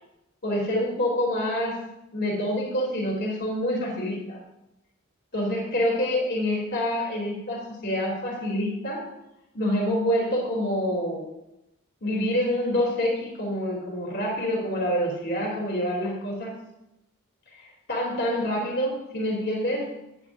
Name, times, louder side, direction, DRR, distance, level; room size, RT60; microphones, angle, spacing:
voice 1, 0.4-1.8 2.1-4.4 5.3-9.0 9.5-11.3 12.0-16.6 17.5-19.9, equal, 50° left, -2 dB, 3.3 m, -27 dB
15.0 x 9.9 x 2.7 m, 0.87 s
head